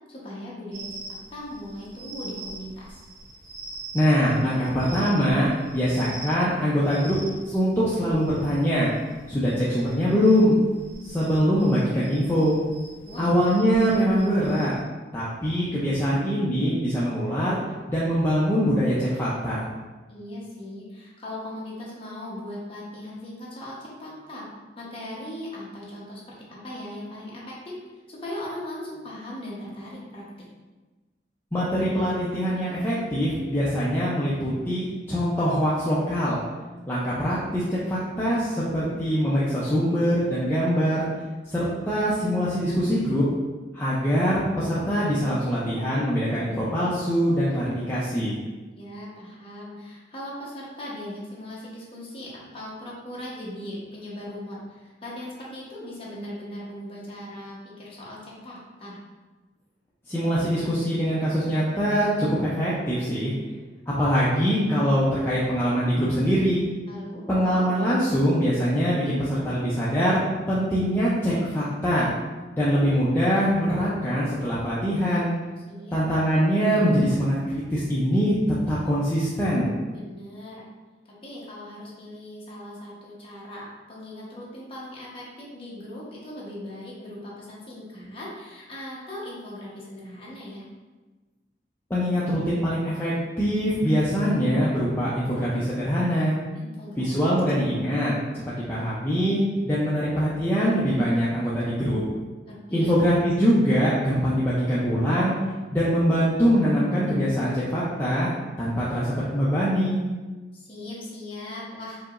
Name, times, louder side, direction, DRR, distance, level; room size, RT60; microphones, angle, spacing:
voice 1, 0.1-0.9 1.3-3.0 13.0-13.3 20.1-24.5 24.8-27.8 28.1-30.2 48.8-59.0 66.9-67.2 75.7-76.0 79.9-80.6 81.0-90.6 96.5-97.1 102.4-102.9 110.5-112.0, left 1 dB, 30° left, -6 dB, 1.0 m, -39 dB
sound 1, 0.7-14.8, right 2 dB, 70° right, 1.4 m, -43 dB
voice 2, 3.9-7.2 7.5-8.9 9.3-10.6 11.0-12.6 13.2-14.7 15.1-17.6 17.9-19.7 31.5-36.4 36.9-41.1 41.5-43.3 43.7-48.4 60.1-63.3 63.9-66.6 67.3-72.1 72.5-75.3 75.9-78.3 78.7-79.7 91.9-96.3 97.0-98.1 98.6-99.4 99.6-102.0 102.7-105.3 105.7-108.3 108.6-110.0, equal, 10° left, -9 dB, 0.5 m, -23 dB
4.8 x 2.9 x 2.5 m, 1.3 s
head